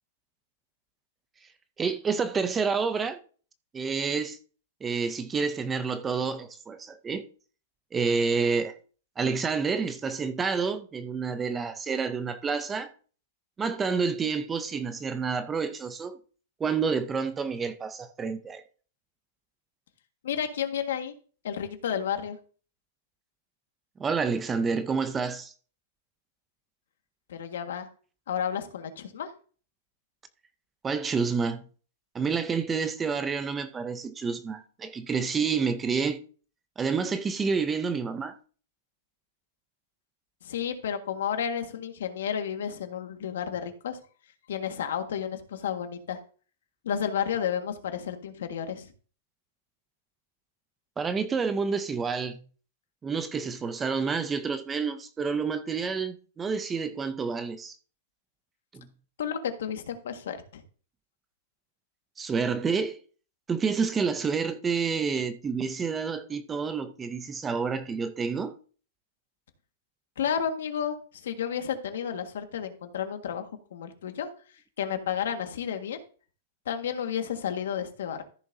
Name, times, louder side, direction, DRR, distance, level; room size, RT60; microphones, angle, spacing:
voice 1, 1.8-3.2 3.7-4.4 4.8-7.3 7.9-8.7 9.2-12.9 13.6-16.2 16.6-18.6 24.0-25.5 30.8-31.6 32.1-36.2 36.8-38.4 51.0-52.4 53.0-57.8 58.7-58.9 62.2-63.0 63.5-68.5, right 5 dB, 10° right, 0.4 m, -29 dB
voice 2, 20.2-21.1 21.4-22.4 27.3-27.9 28.3-29.3 40.4-44.0 44.5-46.2 46.8-48.9 59.2-60.6 70.2-71.0 71.2-74.3 74.8-76.0 76.6-78.2, left 8 dB, 75° left, 1.6 m, -31 dB
14.0 x 6.9 x 2.7 m
supercardioid pair, 180°, 0 cm